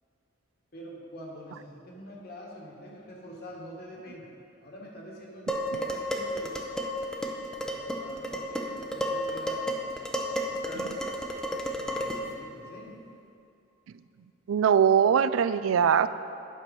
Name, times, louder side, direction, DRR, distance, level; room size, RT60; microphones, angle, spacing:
voice 1, 0.7-4.3 4.6-6.7 7.6-11.1 11.6-13.0, equal, 50° left, -3 dB, 1.7 m, -46 dB
Dishes pots and pans, 5.5-12.3, equal, 5° left, 0.6 m, -32 dB
voice 2, 14.5-16.1, right 7 dB, 85° right, 13 dB, 0.3 m, -21 dB
9.8 x 6.1 x 5.4 m, 2.6 s
head